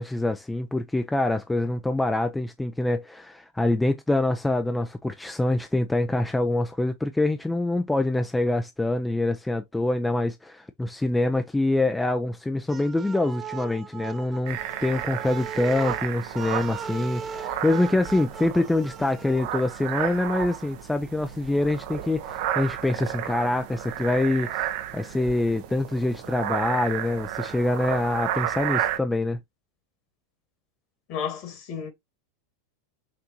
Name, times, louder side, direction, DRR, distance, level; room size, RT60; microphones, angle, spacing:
voice 1, 0.0-29.4, left 2 dB, 10° left, 0.5 m, -25 dB
sound 1, 12.7-19.4, right 7 dB, 30° right, 0.7 m, -38 dB
sound 2, 14.5-29.0, right 11 dB, 60° right, 0.8 m, -32 dB
voice 2, 31.1-31.9, left 7 dB, 50° left, 2.1 m, -32 dB
5.9 x 2.6 x 2.8 m
hypercardioid pair, 95°, 0 cm